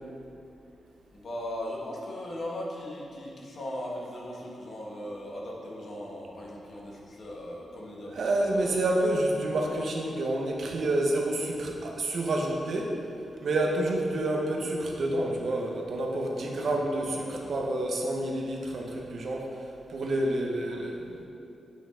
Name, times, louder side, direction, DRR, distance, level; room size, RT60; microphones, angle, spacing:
voice 1, 1.1-8.7 16.4-17.5 20.5-20.9, left 1 dB, 55° left, -3 dB, 1.5 m, -39 dB
voice 2, 8.1-12.9 13.4-21.2, right 1 dB, 60° right, 0 dB, 1.0 m, -29 dB
8.5 x 5.8 x 3.7 m, 2.7 s
wide cardioid pair, 140°, 0 cm